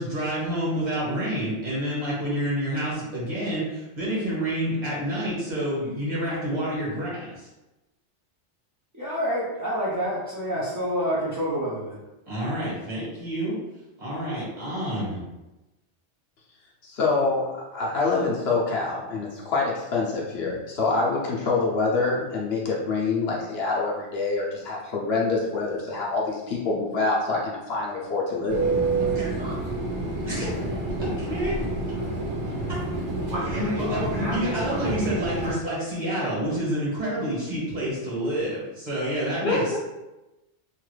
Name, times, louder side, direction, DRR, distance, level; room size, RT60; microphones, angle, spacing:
voice 1, 0.0-7.5 12.3-13.6 14.0-15.2 29.1-29.6 30.3-30.5 31.0-31.6 33.4-39.8, equal, 40° right, -8 dB, 1.4 m, -28 dB
voice 2, 8.9-12.0, equal, 25° right, -9 dB, 0.4 m, -27 dB
voice 3, 16.8-28.8 39.4-39.8, left 3 dB, 65° left, -3 dB, 0.8 m, -26 dB
Fixed-wing aircraft airplane, 28.5-35.5, right 2 dB, 90° right, 1.2 m, -28 dB
2.9 x 2.4 x 3.2 m, 1.0 s
omnidirectional pair, 1.2 m